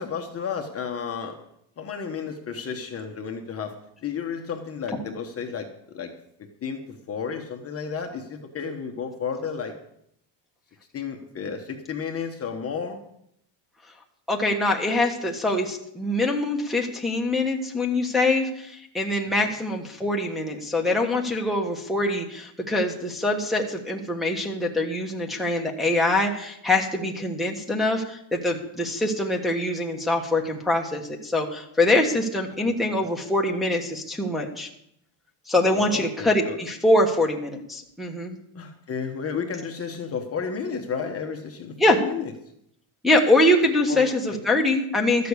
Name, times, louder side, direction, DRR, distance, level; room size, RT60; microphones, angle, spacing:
voice 1, 0.0-1.4 1.8-6.1 6.6-9.8 10.9-13.0 32.8-33.1 35.7-36.6 38.5-42.3 43.9-44.4, left 6 dB, 30° left, 4 dB, 1.2 m, -32 dB
voice 2, 14.3-34.7 35.5-38.4 41.8-42.0 43.0-45.3, left 1 dB, ahead, -1 dB, 1.3 m, -24 dB
13.0 x 6.8 x 8.2 m, 0.73 s
cardioid pair, 160°, 48 cm